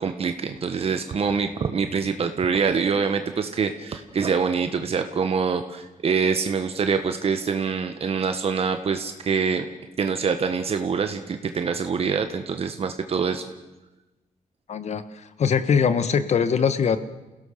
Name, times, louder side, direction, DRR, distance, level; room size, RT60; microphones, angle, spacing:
voice 1, 0.0-9.7 10.0-13.5, right 5 dB, 50° right, 7 dB, 1.5 m, -25 dB
voice 2, 14.7-17.0, left 6 dB, 55° left, 12 dB, 1.5 m, -22 dB
28.5 x 17.0 x 6.8 m, 1.1 s
cardioid pair, 120°, 13 cm